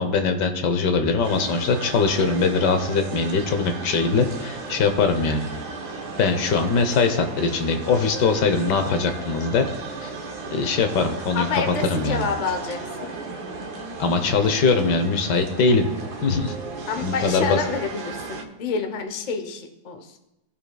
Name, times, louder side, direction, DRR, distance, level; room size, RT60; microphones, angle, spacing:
voice 1, 0.0-5.5 6.2-9.7 10.0-10.1 10.5-12.3 14.0-15.9 16.2-16.6 17.0-17.6, left 4 dB, 80° left, 7 dB, 1.5 m, -22 dB
sound 1, 1.2-18.4, right 3 dB, 70° right, 1.5 m, -35 dB
voice 2, 11.3-13.1 16.9-20.2, left 4 dB, 35° left, 5 dB, 0.7 m, -28 dB
17.0 x 5.7 x 2.3 m, 0.92 s
omnidirectional pair, 1.8 m